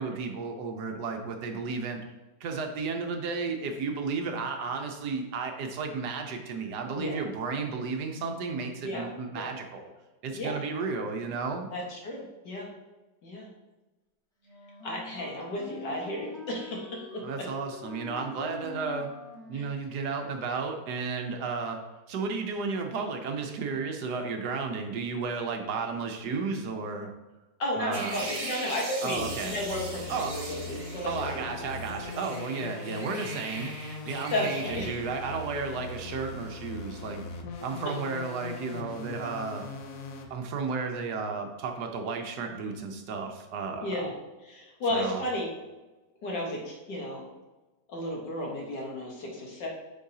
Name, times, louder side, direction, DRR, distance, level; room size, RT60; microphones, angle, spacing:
voice 1, 0.0-2.0 2.4-9.9 10.2-11.7 17.2-19.1 19.5-21.8 22.1-27.1 27.8-28.2 29.0-29.6 30.1-30.3 31.1-33.7 34.1-37.2 37.6-39.7 40.3-44.1 44.9-45.2, right 4 dB, 70° right, 4 dB, 1.3 m, -33 dB
voice 2, 11.7-12.7 13.2-13.5 14.8-17.0 19.5-19.6 27.6-31.7 34.3-35.0 43.8-44.1 44.4-45.5 46.2-47.3 47.9-49.7, left 1 dB, 75° left, -2 dB, 2.1 m, -33 dB
Wind instrument woodwind instrument, 14.4-20.3, left 4 dB, ahead, 1.1 m, -45 dB
sound 1, 27.9-31.4 31.7-34.9, right 2 dB, 50° right, 0.4 m, -40 dB
sound 2, 29.2-40.3, left 3 dB, 60° left, 1.1 m, -40 dB
8.5 x 4.6 x 2.7 m, 1.1 s
omnidirectional pair, 1.9 m